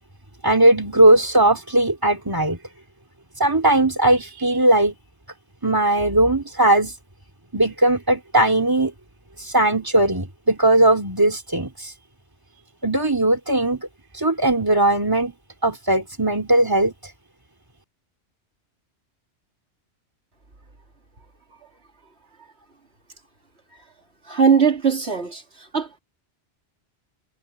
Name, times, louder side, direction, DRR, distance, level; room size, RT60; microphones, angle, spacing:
voice 1, 0.4-2.6 3.4-4.9 5.6-6.9 7.5-8.9 9.4-11.9 12.8-13.9 14.1-15.3 15.6-16.9, right 1 dB, 20° right, 3.2 m, -18 dB
voice 2, 24.3-25.4 25.7-26.0, right 6 dB, 65° right, 2.9 m, -19 dB
omnidirectional pair, 1.2 m